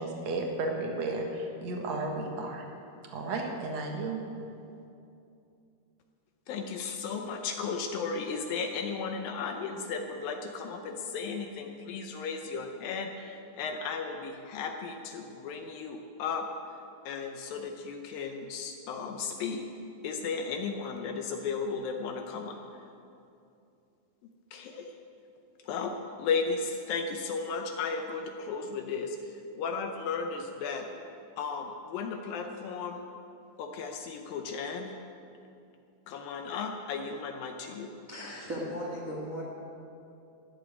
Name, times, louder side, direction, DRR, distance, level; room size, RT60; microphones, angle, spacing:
voice 1, 0.0-2.6 3.1-4.2, right 2 dB, 55° right, 1 dB, 2.2 m, -33 dB
voice 2, 6.5-16.5 17.1-19.6 20.0-22.6 24.5-24.9 25.6-30.9 31.4-33.1 33.6-34.9 36.1-37.9, left 5 dB, 75° left, 4 dB, 2.3 m, -35 dB
voice 3, 38.1-39.4, equal, 40° right, -4 dB, 1.2 m, -36 dB
14.0 x 7.5 x 9.6 m, 2.7 s
omnidirectional pair, 4.6 m